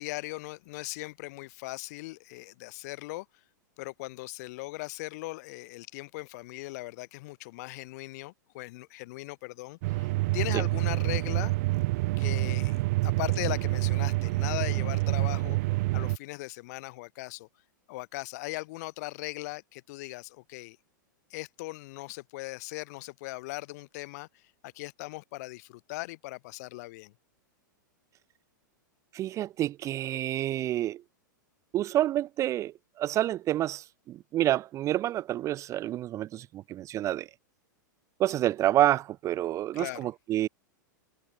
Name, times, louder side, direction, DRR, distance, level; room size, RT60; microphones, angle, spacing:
voice 1, 0.0-3.3 3.8-11.5 12.2-17.5 17.9-20.8 21.3-27.1 39.7-40.1, left 22 dB, 55° left, 2.8 m, -39 dB
sound 1, 9.8-16.2, right 21 dB, 55° right, 0.9 m, -27 dB
voice 2, 29.1-31.0 31.7-37.3 38.2-40.5, right 13 dB, 30° right, 0.5 m, -28 dB
hypercardioid pair, 110°, 11 cm